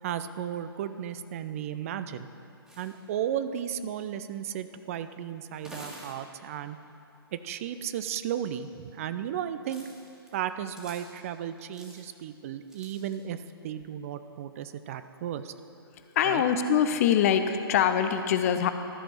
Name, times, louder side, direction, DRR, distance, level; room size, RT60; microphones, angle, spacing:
voice 1, 0.0-2.3 2.8-6.8 7.3-9.8 10.3-15.5 16.2-16.4, right 10 dB, 35° right, 11 dB, 0.3 m, -34 dB
sound 1, 2.7-2.9 4.5-4.6 5.4-6.1 8.2-8.3 9.6-10.3 10.7-11.0 11.6-12.0 12.7-13.2, equal, 5° right, 1.6 m, -48 dB
voice 2, 16.2-18.7, left 8 dB, 40° left, 9 dB, 0.5 m, -23 dB
13.0 x 5.1 x 5.8 m, 2.7 s
figure-of-eight pair, 125°, 13 cm